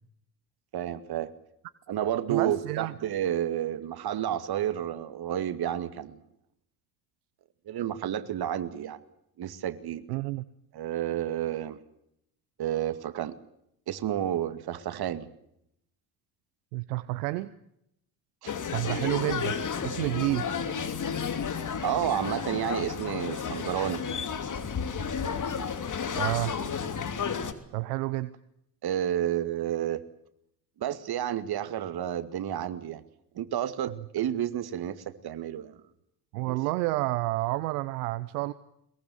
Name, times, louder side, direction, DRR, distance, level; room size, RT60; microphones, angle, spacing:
voice 1, 0.7-1.3 1.9-6.2 7.7-9.0 9.4-10.0 10.7-11.8 12.6-13.4 13.9-15.3 18.4-18.6 21.8-24.1 28.8-30.0 30.8-33.0 33.4-35.8 36.5-36.6, right 11 dB, 50° right, 12 dB, 2.3 m, -30 dB
voice 2, 2.3-2.9 10.1-10.5 16.7-17.5 18.7-19.6 19.8-20.5 26.2-26.5 27.7-28.3 36.3-38.5, right 19 dB, 75° right, 15 dB, 1.0 m, -29 dB
sound 1, 18.5-27.5, left 6 dB, 40° left, 3.0 m, -32 dB
22.5 x 22.0 x 8.1 m, 0.76 s
hypercardioid pair, 60°, 47 cm